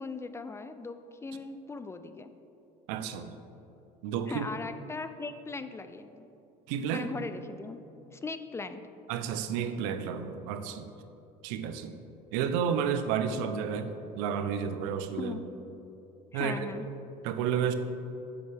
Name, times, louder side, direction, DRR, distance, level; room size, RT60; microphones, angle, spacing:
voice 1, 0.0-2.3 4.3-6.3 6.9-7.8 8.1-8.8 15.2-15.5 16.3-16.8, left 3 dB, 15° left, 10 dB, 0.3 m, -39 dB
voice 2, 2.9-3.4 4.0-4.5 6.7-7.1 9.1-10.9 11.4-11.9 12.3-15.3 16.3-16.5 17.2-17.7, right 7 dB, 80° right, 9 dB, 0.6 m, -31 dB
7.9 x 7.1 x 3.4 m, 2.9 s
supercardioid pair, 105°, 16 cm